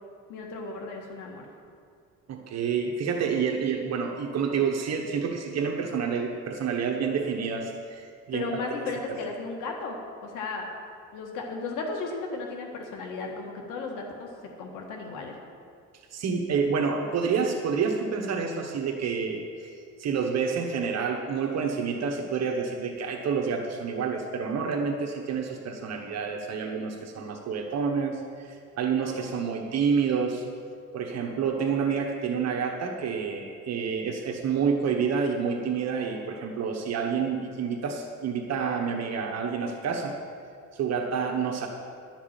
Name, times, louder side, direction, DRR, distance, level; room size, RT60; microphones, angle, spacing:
voice 1, 0.3-1.5 8.3-10.0 10.2-10.8 11.1-14.3 14.6-15.4, left 3 dB, 85° left, 1 dB, 1.7 m, -35 dB
voice 2, 2.3-8.9 16.1-30.4 30.9-40.1 40.7-41.7, right 6 dB, 55° right, 2 dB, 1.2 m, -28 dB
11.5 x 6.0 x 8.9 m, 2.2 s
cardioid pair, 120°, 31 cm